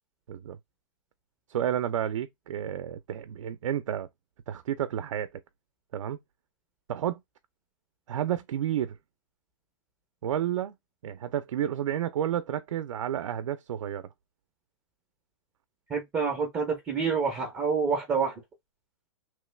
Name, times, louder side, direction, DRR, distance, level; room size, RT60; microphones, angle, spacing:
voice 1, 1.5-4.1 4.5-5.3 5.9-6.2 6.9-7.2 8.1-9.0 10.2-10.7 11.0-14.1, right 10 dB, 70° right, 0.5 m, -31 dB
voice 2, 15.9-18.3, right 5 dB, 10° right, 0.5 m, -27 dB
3.1 x 2.3 x 3.1 m
hypercardioid pair, 170°, 16 cm